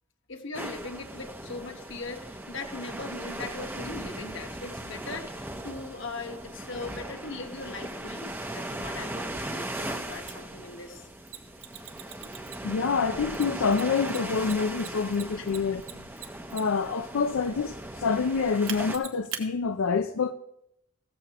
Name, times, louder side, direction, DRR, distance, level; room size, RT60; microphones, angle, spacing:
voice 1, 0.3-11.1 15.4-15.5, left 3 dB, 60° left, 1.4 m, -40 dB
sound 1, 0.5-19.0, right 1 dB, 10° right, 0.7 m, -38 dB
Mechanisms, 10.3-10.4 11.3-12.8 13.3-16.9 18.7-19.4, right 9 dB, 75° right, 1.4 m, -40 dB
voice 2, 12.6-15.8 16.5-20.3, left 5 dB, 85° left, 0.5 m, -27 dB
15.5 x 13.5 x 3.0 m
head